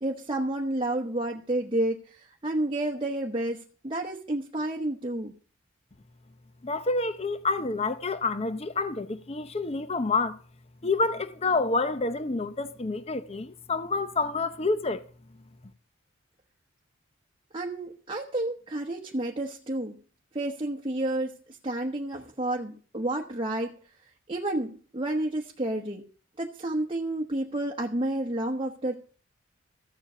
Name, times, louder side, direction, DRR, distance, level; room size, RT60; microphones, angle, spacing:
voice 1, 0.0-5.3 17.5-20.0 20.3-23.7 24.0-26.0 26.4-29.0, right 1 dB, 25° right, 1.0 m, -30 dB
voice 2, 6.6-10.4 10.8-15.0, left 3 dB, 30° left, 0.6 m, -28 dB
14.5 x 7.6 x 6.7 m
head